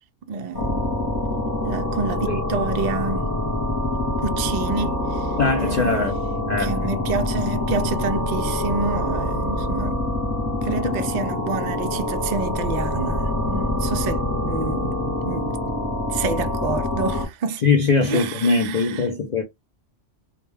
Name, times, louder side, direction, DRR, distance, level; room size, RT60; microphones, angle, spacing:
voice 1, 0.3-0.9 1.6-3.3 4.2-5.4 5.6-6.1 6.6-10.0 10.6-15.0 15.2-15.6 16.1-17.6 18.0-19.1, right 4 dB, 70° right, 0.4 m, -28 dB
sound 1, 0.5-17.3, left 1 dB, 15° left, 0.8 m, -25 dB
voice 2, 5.4-6.1 6.5-6.7 17.6-19.4, left 4 dB, 55° left, 0.4 m, -21 dB
2.3 x 2.2 x 3.2 m
omnidirectional pair, 1.2 m